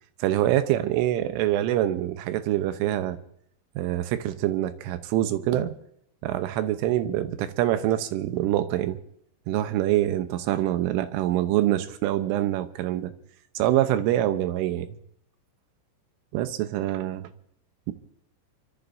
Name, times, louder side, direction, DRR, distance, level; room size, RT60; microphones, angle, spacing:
voice 1, 0.2-3.2 3.8-5.7 6.2-9.0 9.5-13.1 13.5-14.9 16.3-17.3, right 13 dB, 90° right, 10 dB, 3.4 m, -25 dB
29.5 x 14.0 x 2.7 m, 0.69 s
omnidirectional pair, 5.5 m